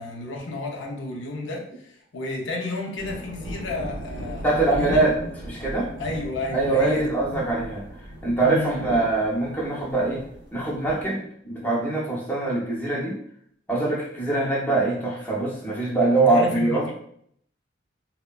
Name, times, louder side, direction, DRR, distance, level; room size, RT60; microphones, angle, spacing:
voice 1, 0.0-5.1 6.0-7.1 8.4-8.9 16.1-16.9, left 2 dB, 75° left, 0 dB, 0.5 m, -32 dB
sound 1, 3.0-11.1, right 1 dB, 70° right, 0.8 m, -37 dB
voice 2, 4.4-5.1 5.4-5.9 6.5-7.9 8.2-10.2 10.5-13.2 13.7-16.8, right 2 dB, 10° left, -5 dB, 0.5 m, -23 dB
3.2 x 2.1 x 2.2 m, 0.66 s
head